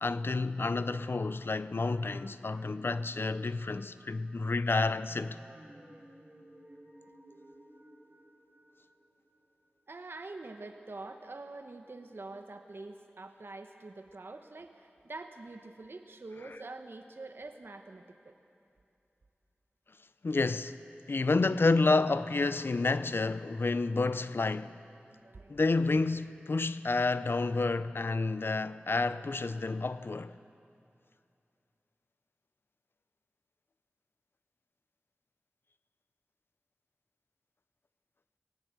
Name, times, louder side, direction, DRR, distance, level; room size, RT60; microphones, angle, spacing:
voice 1, 0.0-5.4 20.2-20.8 21.1-24.8 25.5-30.4, left 3 dB, 65° left, 0.6 m, -29 dB
sound 1, 1.8-9.5, right 1 dB, 40° right, 3.4 m, -56 dB
voice 2, 9.9-18.3 25.2-25.5, right 3 dB, 70° right, 1.0 m, -45 dB
20.0 x 18.0 x 8.1 m
wide cardioid pair, 45°, 4 cm